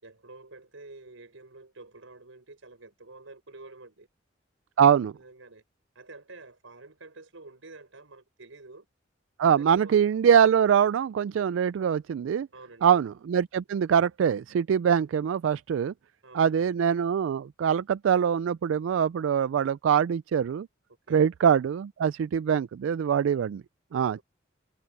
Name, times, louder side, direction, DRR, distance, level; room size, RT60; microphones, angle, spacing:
voice 1, 0.0-4.1 5.1-5.6 5.9-8.9 9.5-10.0 12.5-13.0 16.2-16.8 21.1-21.2 23.9-24.2, right 3 dB, 90° right, 5.0 m, -49 dB
voice 2, 4.8-5.1 9.4-12.5 12.8-15.9 16.3-20.7 21.1-23.6 23.9-24.2, right 8 dB, 75° right, 0.3 m, -23 dB
head